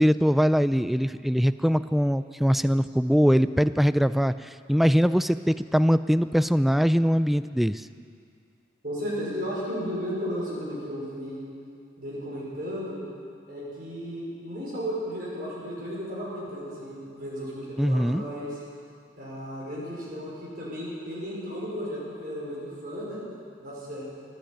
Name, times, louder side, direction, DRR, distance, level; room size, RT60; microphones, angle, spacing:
voice 1, 0.0-7.8 17.8-18.2, equal, ahead, 14 dB, 0.3 m, -22 dB
voice 2, 8.8-11.4 12.0-13.0 13.5-18.6 19.2-23.2 23.6-24.0, equal, 55° right, -6 dB, 5.4 m, -34 dB
16.0 x 10.5 x 8.7 m, 2.2 s
head